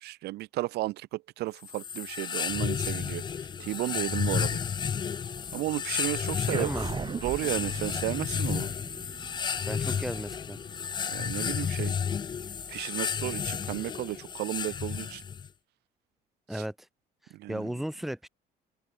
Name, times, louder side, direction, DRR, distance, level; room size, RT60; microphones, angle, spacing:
voice 1, 0.0-4.6 5.5-6.7 7.2-8.7 11.1-11.9 12.7-15.2 16.5-16.6 17.4-17.7, right 18 dB, 75° right, 0.6 m, -33 dB
sound 1, 1.6-15.5, left 7 dB, 25° left, 0.4 m, -32 dB
Wind instrument woodwind instrument, 4.7-11.4, left 9 dB, 50° left, 7.6 m, -57 dB
voice 2, 6.5-6.9 9.7-10.6 16.5-16.9 17.2-18.3, right 1 dB, ahead, 0.8 m, -35 dB
sound 2, 6.5-11.2, right 5 dB, 30° right, 1.6 m, -40 dB
open air
cardioid pair, 110°, 17 cm